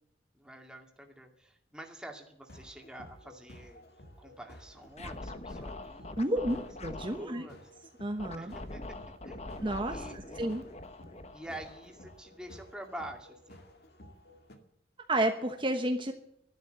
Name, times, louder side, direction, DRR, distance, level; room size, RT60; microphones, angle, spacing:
voice 1, 0.3-3.8 4.2-6.2 7.1-7.6 8.4-9.0 9.2-10.4 11.3-13.6, right 1 dB, 5° right, 2 dB, 2.3 m, -47 dB
sound 1, 2.4-14.6, left 1 dB, 60° left, 2.0 m, -54 dB
Scratching (performance technique), 4.9-7.3 8.2-12.5, left 2 dB, 35° left, 1.1 m, -44 dB
voice 2, 6.2-7.5 8.0-8.6 9.6-10.6 15.1-16.1, right 1 dB, 30° right, 5 dB, 1.1 m, -31 dB
13.0 x 12.0 x 7.9 m, 0.74 s
head